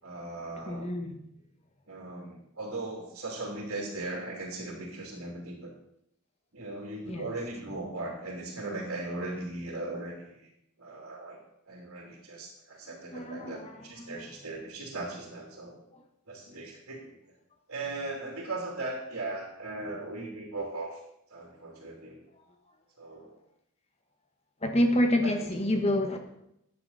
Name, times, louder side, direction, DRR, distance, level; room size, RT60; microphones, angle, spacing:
voice 1, 0.0-0.9 1.9-5.7 6.5-10.5 10.8-11.4 11.7-15.8 16.3-17.1 17.7-21.0 21.3-22.2 23.0-23.4 25.2-25.4, right 2 dB, 75° right, -1 dB, 3.0 m, -38 dB
voice 2, 0.6-1.2 7.1-7.3 13.1-14.3 15.9-16.0 24.6-26.2, left 1 dB, 30° left, 5 dB, 1.4 m, -28 dB
14.5 x 9.8 x 4.1 m, 0.79 s
head